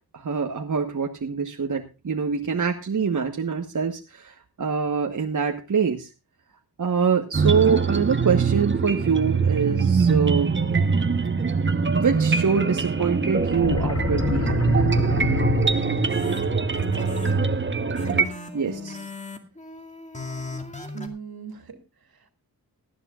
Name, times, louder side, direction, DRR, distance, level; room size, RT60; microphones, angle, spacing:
voice 1, 0.1-6.1 6.8-10.5 11.9-14.6 18.5-19.0, right 6 dB, 50° right, 4 dB, 1.3 m, -25 dB
sound 1, 7.3-18.2, right 5 dB, 30° right, 1.0 m, -23 dB
sound 2, 13.4-16.2, left 4 dB, 40° left, 1.0 m, -27 dB
sound 3, 16.1-21.1, left 3 dB, 20° left, 2.3 m, -37 dB
voice 2, 17.0-19.0 20.9-22.3, right 6 dB, 70° right, 8 dB, 2.6 m, -42 dB
18.5 x 13.5 x 2.4 m, 0.30 s
wide cardioid pair, 120°, 38 cm